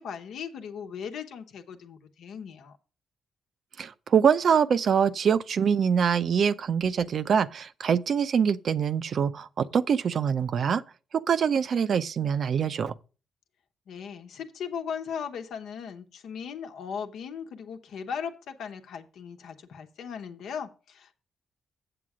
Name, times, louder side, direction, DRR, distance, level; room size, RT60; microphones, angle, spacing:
voice 1, 0.0-2.8 13.9-21.1, left 7 dB, 75° left, 1.0 m, -38 dB
voice 2, 3.8-10.8 11.1-12.9, right 7 dB, 60° right, 0.6 m, -24 dB
7.8 x 7.4 x 4.9 m
supercardioid pair, 65°, 0 cm